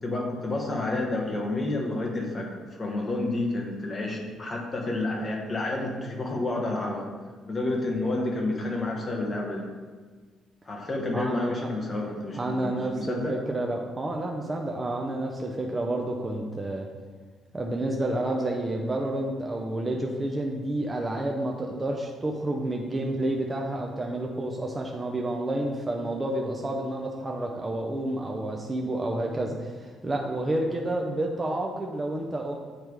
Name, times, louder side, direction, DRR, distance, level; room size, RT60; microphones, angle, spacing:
voice 1, 0.0-7.1 7.5-9.6 10.7-13.3, left 2 dB, 20° left, 0 dB, 1.1 m, -30 dB
voice 2, 11.1-11.7 12.3-16.9 17.5-32.5, right 1 dB, 15° right, 0 dB, 0.5 m, -30 dB
9.0 x 3.3 x 4.7 m, 1.4 s
cardioid pair, 175°, 0 cm